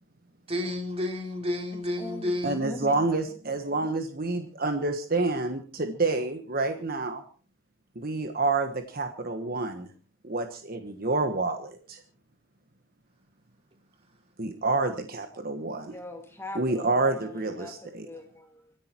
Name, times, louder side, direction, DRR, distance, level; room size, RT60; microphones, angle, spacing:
voice 1, 0.5-2.7, left 1 dB, 30° right, 3 dB, 3.6 m, -31 dB
voice 2, 1.7-3.8 15.8-18.7, left 1 dB, 10° left, 4 dB, 2.1 m, -44 dB
voice 3, 2.4-7.2 7.9-9.9 10.2-12.0 14.4-15.9 16.5-18.1, right 3 dB, 45° right, 7 dB, 1.3 m, -28 dB
25.5 x 10.5 x 4.5 m, 0.39 s
head